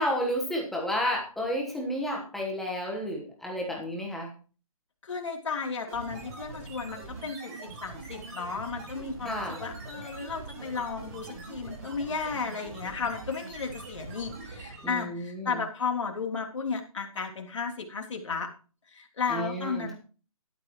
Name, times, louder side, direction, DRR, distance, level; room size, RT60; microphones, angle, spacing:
voice 1, 0.0-4.3 9.2-9.6 14.8-15.5 19.3-19.9, equal, ahead, -1 dB, 1.2 m, -31 dB
voice 2, 5.0-18.5 18.9-19.9, left 5 dB, 55° left, 2 dB, 3.2 m, -34 dB
sound 1, 5.9-15.0, right 3 dB, 25° right, 4.3 m, -43 dB
12.5 x 11.5 x 3.0 m, 0.37 s
hypercardioid pair, 165°, 18 cm